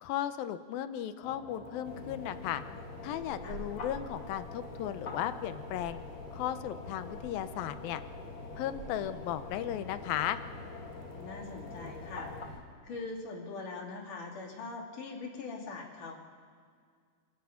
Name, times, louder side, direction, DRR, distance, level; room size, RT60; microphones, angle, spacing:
voice 1, 0.0-2.6 3.0-6.0 6.3-8.0 8.6-10.4, left 11 dB, 85° left, 11 dB, 2.7 m, -35 dB
sound 1, 1.2-12.4, left 4 dB, 40° left, 2.1 m, -47 dB
sound 2, 1.8-12.6, equal, 40° right, 3.6 m, -46 dB
voice 2, 11.1-16.1, left 3 dB, 65° left, -1 dB, 4.1 m, -42 dB
27.5 x 25.5 x 5.8 m, 2.1 s
omnidirectional pair, 4.1 m